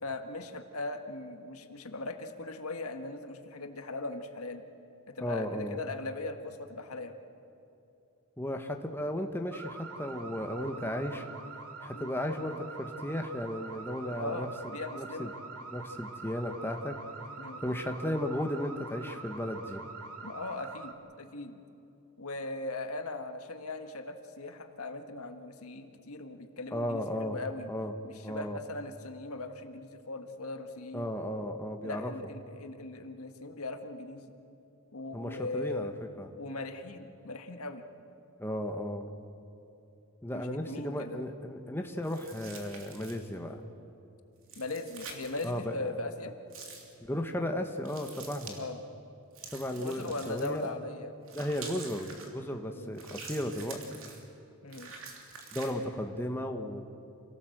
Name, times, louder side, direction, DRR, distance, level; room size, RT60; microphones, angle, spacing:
voice 1, 0.0-4.6 5.1-7.1 11.9-12.1 14.2-15.3 17.4-17.6 20.2-21.6 22.2-27.7 28.0-31.1 31.8-34.3 34.9-35.9 36.4-37.9 40.3-41.2 44.5-46.4 48.6-48.8 49.7-51.1 52.7-52.9 54.6-54.9, left 2 dB, 80° left, 6 dB, 1.6 m, -39 dB
voice 2, 5.2-5.8 8.4-11.2 11.8-15.3 15.7-17.0 17.6-19.8 26.7-27.4 27.7-27.9 28.2-28.6 30.9-32.1 35.1-35.9 36.2-36.3 38.4-39.1 40.2-43.6 45.4-46.0 47.0-48.6 49.5-50.7 51.3-53.8 55.5-56.8, left 1 dB, 10° left, 4 dB, 1.2 m, -35 dB
sound 1, 9.5-20.9, right 4 dB, 90° right, 2.0 m, -45 dB
sound 2, 42.0-43.3 44.4-45.5 46.5-46.9 47.9-48.6 49.3-50.7 51.3-52.3 53.0-54.2 54.7-55.7, right 4 dB, 65° right, 3.2 m, -47 dB
27.5 x 18.0 x 7.9 m, 2.8 s
head